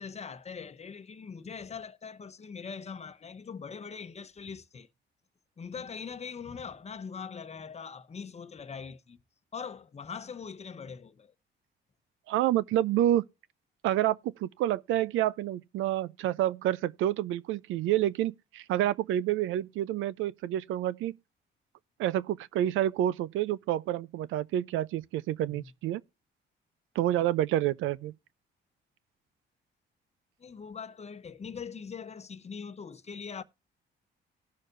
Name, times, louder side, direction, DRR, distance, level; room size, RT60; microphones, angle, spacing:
voice 1, 0.0-4.9 5.6-9.2 9.5-11.3 25.5-25.7 30.4-33.4, left 6 dB, 35° left, 0.9 m, -42 dB
voice 2, 12.3-13.2 13.8-21.2 22.0-26.0 27.0-28.1, right 13 dB, 85° right, 0.5 m, -28 dB
18.0 x 6.5 x 2.6 m
cardioid pair, 90°, 20 cm